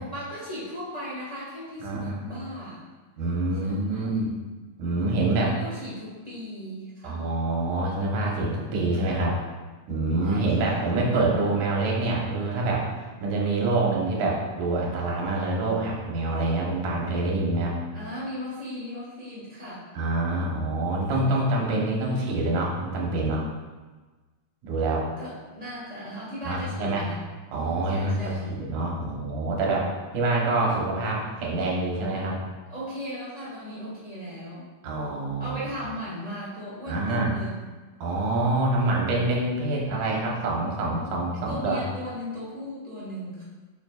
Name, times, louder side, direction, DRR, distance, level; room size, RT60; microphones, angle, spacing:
voice 1, 0.0-2.8 3.6-4.2 5.4-7.2 10.2-10.7 17.9-19.9 25.2-27.2 27.9-28.5 32.7-34.6 35.4-37.5 41.5-43.4, equal, 25° left, -9 dB, 0.8 m, -37 dB
voice 2, 1.8-2.2 3.2-4.3 4.8-5.5 7.0-9.4 9.9-12.8 13.2-17.7 19.9-23.4 24.6-25.1 26.4-27.1 27.5-29.9 30.1-32.4 34.8-35.6 36.9-37.3 38.0-41.8, right 2 dB, 85° right, -3 dB, 2.7 m, -26 dB
7.6 x 5.1 x 2.4 m, 1.3 s
omnidirectional pair, 3.5 m